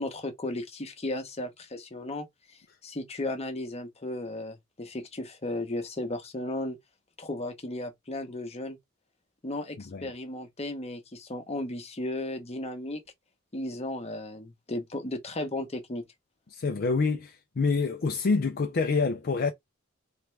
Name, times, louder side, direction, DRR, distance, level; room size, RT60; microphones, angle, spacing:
voice 1, 0.0-6.8 7.2-8.8 9.4-13.0 13.5-16.0, left 2 dB, 30° left, 0.9 m, -35 dB
voice 2, 16.5-19.5, left 4 dB, 45° left, 0.5 m, -27 dB
3.5 x 3.3 x 3.2 m
head